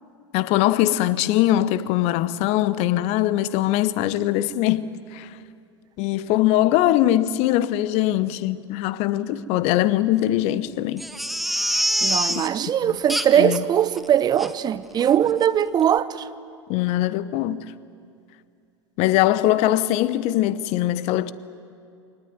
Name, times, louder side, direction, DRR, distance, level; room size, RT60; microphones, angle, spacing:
voice 1, 0.3-5.3 6.0-11.0 12.3-12.4 12.8-13.0 13.4-13.6 16.7-17.6 19.0-21.3, left 14 dB, 45° left, 1.0 m, -21 dB
Crying sobbing, 11.0-12.5 13.1-13.6 13.9-14.0 14.4-14.5 15.0-15.1 15.4-15.5, equal, ahead, 1.1 m, -25 dB
voice 2, 12.0-16.3, right 9 dB, 25° right, 0.9 m, -20 dB
24.0 x 19.0 x 9.4 m
figure-of-eight pair, 90°, 16 cm